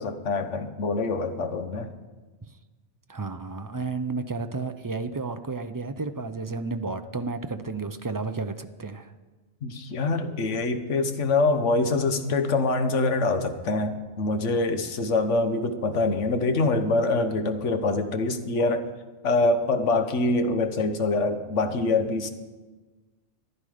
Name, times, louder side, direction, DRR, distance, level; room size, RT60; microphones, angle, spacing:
voice 1, 0.0-1.9 9.6-18.9 19.2-22.3, left 3 dB, 85° left, 8 dB, 1.3 m, -25 dB
voice 2, 3.1-9.1, right 3 dB, 35° right, 9 dB, 0.3 m, -32 dB
14.0 x 11.0 x 5.0 m, 1.3 s
omnidirectional pair, 1.2 m